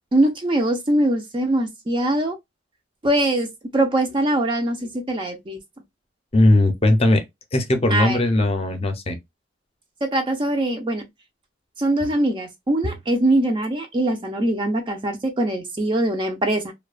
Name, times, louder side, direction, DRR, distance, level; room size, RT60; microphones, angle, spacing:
voice 1, 0.1-2.4 3.0-3.5 3.7-5.6 7.9-8.2 10.0-11.0 11.8-16.7, right 1 dB, 25° right, 0.4 m, -22 dB
voice 2, 6.3-7.2 7.5-9.2, left 1 dB, 35° left, 0.6 m, -18 dB
2.7 x 2.1 x 2.3 m
head